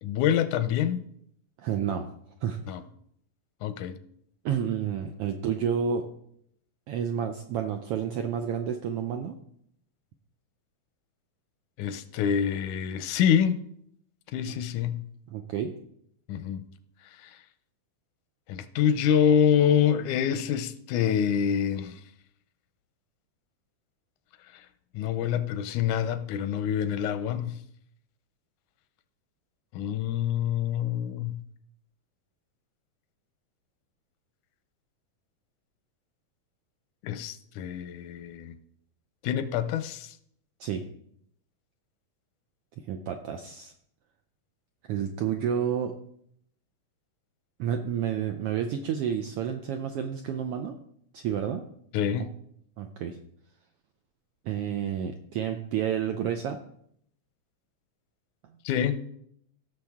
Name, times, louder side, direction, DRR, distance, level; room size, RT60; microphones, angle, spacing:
voice 1, 0.0-1.0 2.7-2.8 3.6-4.0 11.8-13.6 14.3-15.0 16.3-16.6 17.2-17.3 18.5-22.0 24.9-27.6 29.7-31.4 37.0-38.6 39.2-40.1 51.9-52.3 58.7-59.0, left 8 dB, 90° left, 2.1 m, -26 dB
voice 2, 1.6-2.1 2.4-2.6 4.4-6.1 6.9-9.4 14.5-14.6 15.3-15.7 40.6-40.8 42.9-43.7 44.9-45.9 47.6-50.8 51.1-51.6 52.8-53.2 54.4-56.6, right 8 dB, 80° right, 1.3 m, -30 dB
16.0 x 6.5 x 3.6 m
omnidirectional pair, 3.4 m